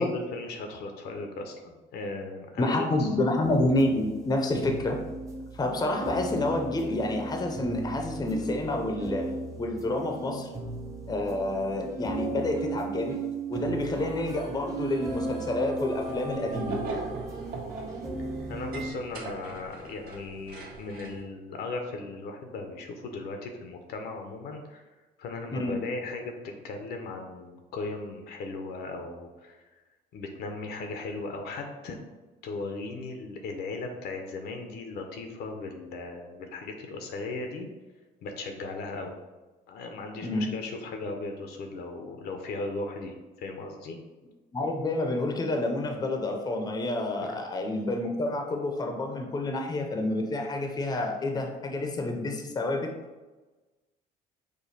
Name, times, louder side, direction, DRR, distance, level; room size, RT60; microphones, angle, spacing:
voice 1, 0.0-3.1 18.2-24.8 25.2-26.3 26.6-29.6 30.1-32.0 32.4-37.7 38.2-39.1 39.7-44.0 47.2-47.4, left 3 dB, 70° left, 4 dB, 0.7 m, -37 dB
voice 2, 2.6-5.0 5.5-9.3 9.6-10.5 11.1-13.2 13.5-16.8 25.5-25.8 40.2-40.5 44.5-52.9, left 2 dB, 25° left, 3 dB, 0.6 m, -28 dB
sound 1, 3.4-18.9, right 3 dB, 20° right, 0.8 m, -36 dB
sound 2, 13.8-19.3, right 3 dB, 45° right, 1.4 m, -44 dB
sound 3, 15.9-21.2, right 2 dB, 60° right, 1.1 m, -39 dB
5.1 x 2.2 x 4.1 m, 1.2 s
cardioid pair, 110°, 17 cm